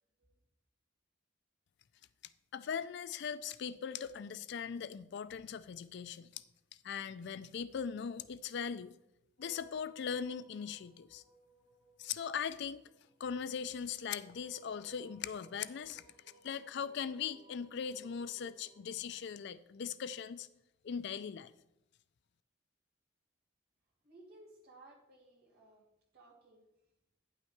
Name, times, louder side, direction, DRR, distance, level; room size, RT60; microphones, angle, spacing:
voice 1, 2.5-6.3 6.8-8.9 9.4-11.2 12.0-12.8 13.2-16.0 16.4-20.5 20.8-21.5, left 7 dB, 60° left, 15 dB, 0.4 m, -40 dB
sound 1, 9.4-19.2, right 2 dB, 30° right, 3.7 m, -63 dB
voice 2, 24.0-25.8 26.1-26.6, right 2 dB, 50° right, -4 dB, 2.6 m, -58 dB
9.2 x 5.8 x 4.5 m, 0.84 s
head